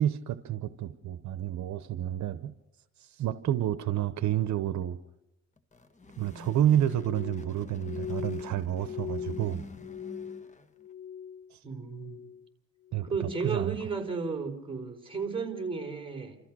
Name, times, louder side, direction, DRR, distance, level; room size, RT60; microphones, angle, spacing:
voice 1, 0.0-2.5 3.0-5.0 6.2-9.6 11.5-11.6 12.9-13.8, right 11 dB, 70° right, 12 dB, 0.9 m, -29 dB
sound 1, 5.6-10.9, left 3 dB, 25° left, 1.6 m, -47 dB
Glass, 7.0-11.5 11.8-12.5 12.9-13.4 14.0-14.3, left 8 dB, 70° left, 0.9 m, -41 dB
voice 2, 11.6-12.2 13.0-16.4, right 4 dB, 15° right, 3 dB, 4.4 m, -34 dB
29.5 x 14.5 x 6.2 m, 0.88 s
cardioid pair, 90°, 30 cm